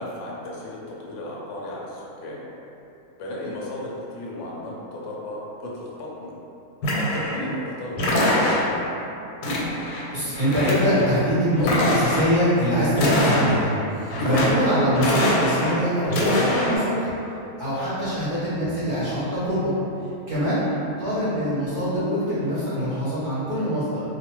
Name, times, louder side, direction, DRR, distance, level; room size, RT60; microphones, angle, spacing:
voice 1, 0.0-2.4 3.2-6.3 6.9-8.7, left 1 dB, 65° left, -4 dB, 0.8 m, -35 dB
sound 1, 6.8-7.5 8.0-8.9 9.4-10.0 10.3-11.1 11.6-12.3 12.9-13.8 14.1-14.7 15.0-15.8 16.0-16.8, left 1 dB, 85° left, 1.1 m, -23 dB
voice 2, 10.1-17.1 17.6-19.7 20.3-24.0, equal, 45° right, -12 dB, 0.7 m, -23 dB
2.4 x 2.3 x 2.9 m, 2.8 s
omnidirectional pair, 1.6 m